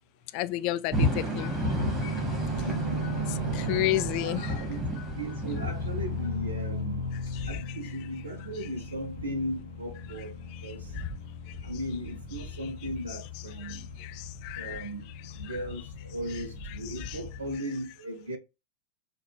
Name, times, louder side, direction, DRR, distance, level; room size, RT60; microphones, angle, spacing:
voice 1, 0.3-1.6 2.0-2.1 3.3-4.5 7.3-7.6 10.6-11.0 13.6-14.9 15.4-15.6 16.9-17.2, left 16 dB, 45° left, 0.3 m, -32 dB
sound 1, 0.9-6.6, equal, 15° right, 1.8 m, -31 dB
sound 2, 1.8-17.6, left 1 dB, 80° left, 1.1 m, -37 dB
voice 2, 2.5-3.5 4.1-4.8 5.2-7.0 7.5-10.4 10.6-10.9 11.6-13.8 14.6-15.1 15.4-18.4, right 1 dB, 70° right, 0.5 m, -37 dB
3.9 x 2.3 x 3.0 m
figure-of-eight pair, 90°, 0 cm